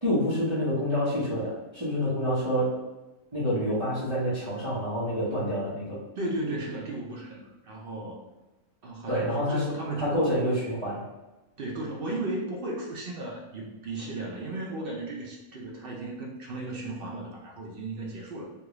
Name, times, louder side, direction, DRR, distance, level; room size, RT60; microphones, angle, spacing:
voice 1, 0.0-2.8 3.3-6.0 9.1-9.6 10.0-11.0, equal, 25° right, -10 dB, 0.7 m, -27 dB
voice 2, 6.2-8.2 8.8-10.2 11.6-18.5, right 2 dB, 70° right, -2 dB, 0.5 m, -35 dB
3.3 x 2.4 x 3.0 m, 1.1 s
omnidirectional pair, 1.6 m